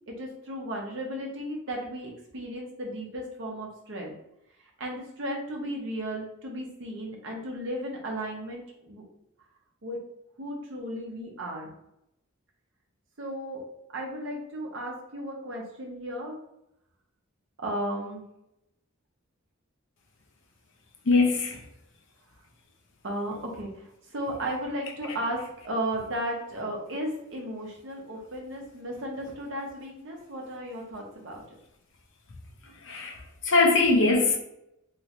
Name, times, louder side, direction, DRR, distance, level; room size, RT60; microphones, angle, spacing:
voice 1, 0.1-4.1 4.8-9.0 9.8-10.0 10.4-11.8 13.2-13.6 13.9-16.4 17.6-18.2 23.0-31.4, right 1 dB, 60° right, 0.8 m, -35 dB
voice 2, 21.1-21.6 32.8-34.4, left 3 dB, 60° left, 0.6 m, -22 dB
3.0 x 3.0 x 2.6 m
head